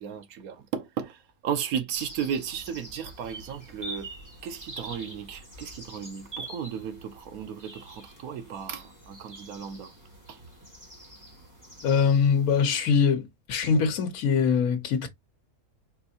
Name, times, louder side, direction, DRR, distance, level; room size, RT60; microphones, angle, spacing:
voice 1, 0.0-4.1 4.4-9.9 10.3-10.4, right 8 dB, 80° right, 1.2 m, -35 dB
sound 1, 1.9-12.9, right 1 dB, 15° right, 1.7 m, -45 dB
voice 2, 11.8-15.1, left 6 dB, 75° left, 1.3 m, -23 dB
4.4 x 3.3 x 2.7 m
omnidirectional pair, 1.5 m